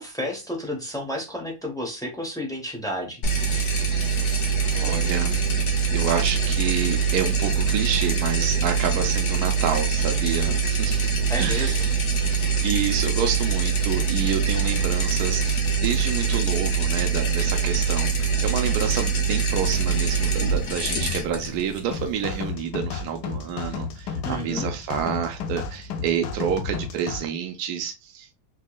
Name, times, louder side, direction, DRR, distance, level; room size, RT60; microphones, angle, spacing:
voice 1, 0.0-3.2 11.3-11.8 24.2-24.7, equal, 5° left, 0.6 m, -31 dB
sound 1, 3.2-22.5, right 5 dB, 50° left, 1.1 m, -24 dB
voice 2, 4.7-11.1 11.4-12.0 12.3-28.3, right 8 dB, 70° right, 1.1 m, -29 dB
sound 2, 21.9-27.2, left 5 dB, 80° left, 1.2 m, -32 dB
4.4 x 2.9 x 2.3 m
omnidirectional pair, 1.8 m